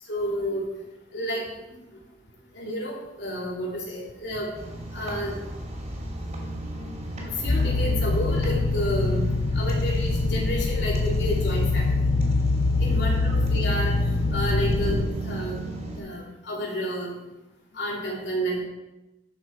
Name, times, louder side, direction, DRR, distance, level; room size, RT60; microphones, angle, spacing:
voice 1, 0.1-0.6 1.1-1.8 2.5-4.5 4.9-5.4 7.3-9.3 9.5-12.1 12.5-14.0 14.3-15.6 16.0-17.2 17.7-18.6, equal, 85° left, -3 dB, 2.8 m, -30 dB
sound 1, 4.5-16.0, right 1 dB, 45° right, 2.7 m, -35 dB
sound 2, 7.5-15.1, left 3 dB, 60° left, 0.5 m, -24 dB
12.0 x 6.5 x 4.6 m, 1.0 s
head